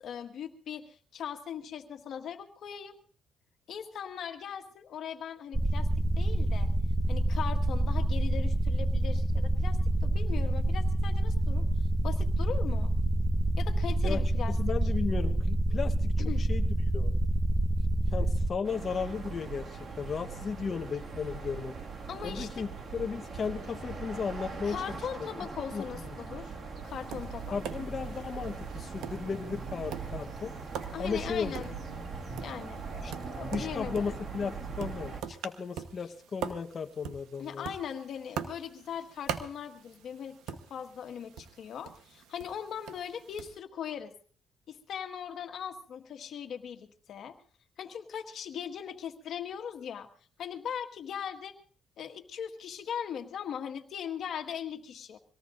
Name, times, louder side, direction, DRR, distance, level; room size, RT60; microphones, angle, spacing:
voice 1, 0.0-2.9 3.7-5.9 6.2-6.7 7.1-11.6 12.0-12.9 13.6-14.6 16.2-16.5 22.1-22.6 24.6-26.5 26.8-27.6 30.9-32.0 32.4-32.8 33.4-34.1 37.4-40.4 40.7-44.1 44.7-47.4 47.8-50.1 50.4-51.6 52.0-55.2, left 8 dB, 65° left, 6 dB, 1.6 m, -39 dB
sound 1, 5.5-18.5, right 1 dB, 15° right, 1.0 m, -27 dB
voice 2, 14.6-16.1 16.4-17.1 18.1-21.7 22.2-25.0 25.6-26.1 27.5-30.5 31.0-31.6 33.0-33.1 33.5-37.7, left 5 dB, 45° left, 5 dB, 1.1 m, -35 dB
sound 2, 18.6-35.2, right 4 dB, 50° right, 2.1 m, -40 dB
Tap, 26.8-43.6, right 8 dB, 90° right, 1.1 m, -44 dB
24.5 x 18.5 x 2.6 m, 0.41 s
cardioid pair, 90°, 0 cm